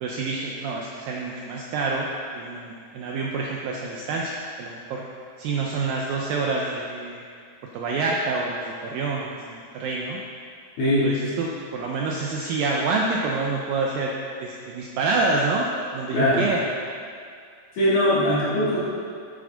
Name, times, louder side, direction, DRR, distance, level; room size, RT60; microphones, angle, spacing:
voice 1, 0.0-4.3 4.6-5.0 5.4-7.2 7.7-10.2 11.0-14.1 14.4-16.6, right 3 dB, 85° right, -1 dB, 2.0 m, -27 dB
voice 2, 10.8-11.1 16.1-16.5 17.7-18.8, left 1 dB, 50° left, -10 dB, 3.7 m, -21 dB
10.0 x 8.6 x 3.9 m, 2.3 s
omnidirectional pair, 4.9 m